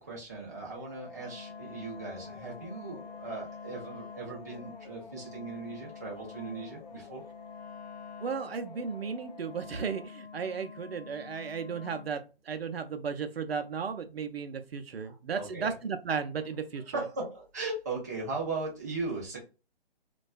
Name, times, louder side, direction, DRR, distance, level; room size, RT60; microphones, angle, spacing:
voice 1, 0.0-7.2 15.0-15.7 16.9-19.4, right 3 dB, 15° right, -3 dB, 0.4 m, -38 dB
sound 1, 0.7-10.1, left 4 dB, 45° left, 0.5 m, -50 dB
Wind instrument woodwind instrument, 1.1-12.2, left 6 dB, 85° left, 0.8 m, -48 dB
voice 2, 8.2-12.2 12.5-17.0, right 6 dB, 75° right, 7 dB, 0.5 m, -35 dB
2.3 x 2.2 x 2.4 m, 0.31 s
figure-of-eight pair, 140°, 31 cm